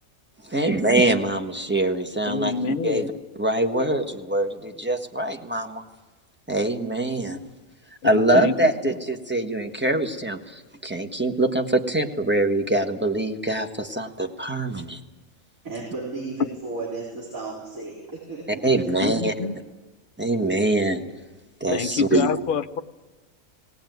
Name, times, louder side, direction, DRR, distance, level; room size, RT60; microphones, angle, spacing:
voice 1, 0.4-3.1 3.4-5.8 6.5-7.4 8.0-15.0 18.6-19.3 20.2-21.0 21.6-22.3, right 1 dB, 10° right, 5 dB, 1.3 m, -24 dB
voice 2, 2.3-3.1 8.0-8.7 19.0-19.6 21.7-22.8, left 6 dB, 45° left, 9 dB, 0.9 m, -27 dB
voice 3, 15.6-18.9 19.4-19.5, right 3 dB, 85° right, -6 dB, 4.9 m, -34 dB
19.0 x 19.0 x 9.3 m, 1.2 s
omnidirectional pair, 1.4 m